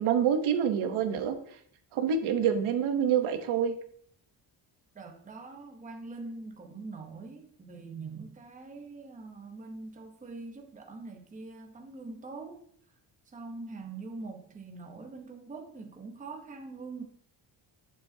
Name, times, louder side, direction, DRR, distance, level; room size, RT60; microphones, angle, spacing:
voice 1, 0.0-1.4 1.9-3.7, right 8 dB, 75° right, 7 dB, 1.0 m, -26 dB
voice 2, 4.9-12.6 13.3-17.0, right 3 dB, 15° right, 3 dB, 0.8 m, -43 dB
8.4 x 7.1 x 2.7 m, 0.62 s
cardioid pair, 155°, 50 cm